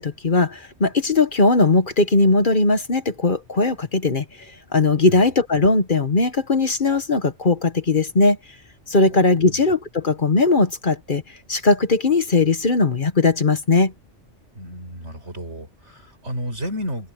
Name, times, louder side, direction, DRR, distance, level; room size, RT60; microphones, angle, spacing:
voice 1, 0.0-4.2 4.7-8.4 8.9-11.2 11.5-13.9, left 3 dB, 45° left, 1.4 m, -19 dB
voice 2, 9.1-9.6 14.5-17.1, equal, 75° right, 6.6 m, -32 dB
open air
omnidirectional pair, 1.2 m